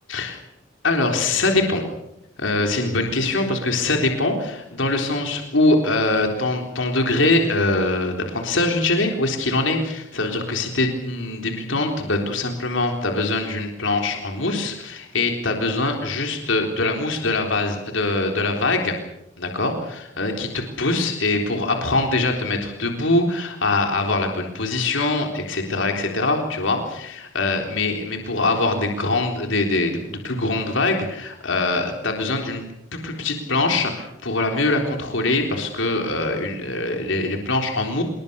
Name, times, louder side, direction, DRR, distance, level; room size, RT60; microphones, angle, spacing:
voice 1, 0.8-1.8 2.4-19.0 19.4-32.6 32.9-38.0, left 2 dB, 75° left, 3 dB, 3.8 m, -23 dB
27.5 x 21.0 x 7.0 m, 0.82 s
head